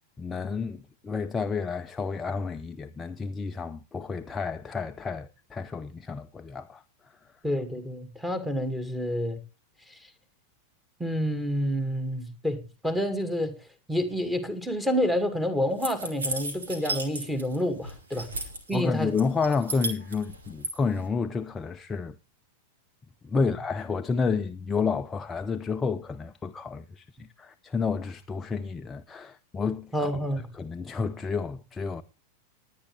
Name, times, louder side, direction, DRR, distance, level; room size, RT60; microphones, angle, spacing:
voice 1, 0.2-7.2 18.2-18.3 18.7-22.1 23.2-30.1 30.5-32.0, left 5 dB, 15° left, 0.6 m, -30 dB
voice 2, 7.4-9.4 11.0-13.6 13.9-18.3 18.7-19.1 29.9-30.5, equal, 5° right, 2.2 m, -28 dB
sound 1, 15.8-17.6 17.8-18.8 19.2-20.7, right 2 dB, 70° right, 2.7 m, -33 dB
20.0 x 9.4 x 3.4 m
figure-of-eight pair, 90°, 0 cm